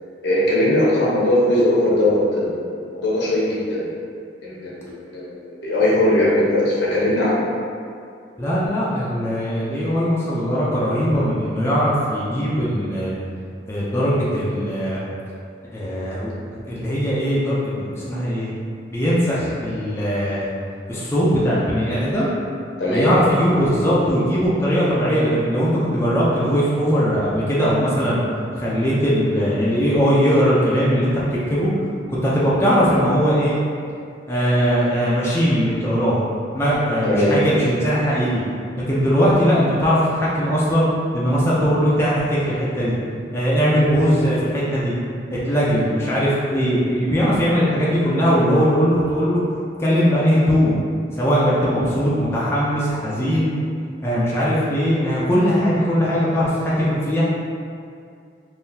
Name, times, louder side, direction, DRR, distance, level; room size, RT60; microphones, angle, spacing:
voice 1, 0.2-3.9 4.4-7.4 22.8-23.1 37.0-37.4, left 1 dB, 75° left, -6 dB, 0.9 m, -19 dB
voice 2, 8.4-13.1 13.7-15.0 15.7-16.3 16.7-18.5 18.9-20.5 20.9-22.3 22.9-28.2 28.6-31.7 32.1-33.6 34.3-36.2 36.5-38.4 38.9-40.9 41.1-42.9 43.3-44.9 45.3-49.4 49.8-50.8 51.2-53.5 54.0-57.2, equal, 15° left, -8 dB, 0.4 m, -20 dB
3.7 x 2.6 x 2.7 m, 2.4 s
head